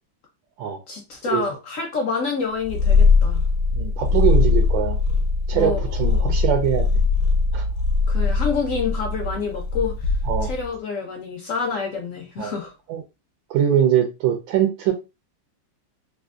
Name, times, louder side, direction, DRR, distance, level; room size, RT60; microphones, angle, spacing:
voice 1, 0.9-3.4 5.5-5.8 6.1-6.4 8.1-10.1 10.4-12.7, left 5 dB, 65° left, 0.8 m, -28 dB
Purr, 2.6-10.7, left 4 dB, 85° left, 1.4 m, -20 dB
voice 2, 3.7-5.0 5.5-6.9 7.5-7.6 10.3-10.5 12.4-12.5 12.9-13.0 13.5-14.9, right 10 dB, 80° right, 1.3 m, -22 dB
3.3 x 2.5 x 2.4 m
omnidirectional pair, 2.1 m